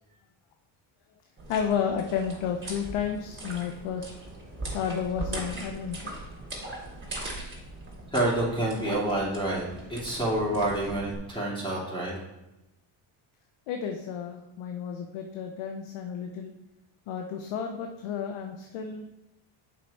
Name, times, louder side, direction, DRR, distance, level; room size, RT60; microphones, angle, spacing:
sound 1, 1.4-11.2, right 2 dB, 25° right, 2.9 m, -40 dB
voice 1, 1.5-4.0 4.6-6.2 13.7-16.5 17.1-19.1, left 7 dB, 80° left, 3 dB, 0.9 m, -32 dB
voice 2, 8.1-12.2, right 1 dB, 10° left, -6 dB, 3.0 m, -28 dB
7.0 x 5.8 x 4.2 m, 0.96 s
cardioid pair, 95°, 49 cm